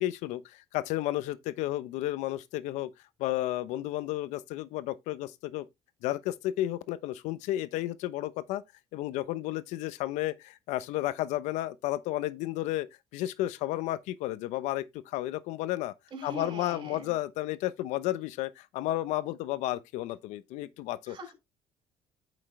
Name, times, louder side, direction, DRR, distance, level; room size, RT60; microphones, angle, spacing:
voice 1, 0.0-2.9 3.2-5.7 6.0-8.6 8.9-12.9 13.1-15.9 16.2-21.2, left 15 dB, 85° left, 0.9 m, -32 dB
voice 2, 16.1-17.1 21.1-21.3, equal, 40° right, 4.7 m, -41 dB
9.0 x 6.4 x 3.3 m
cardioid pair, 105°, 12 cm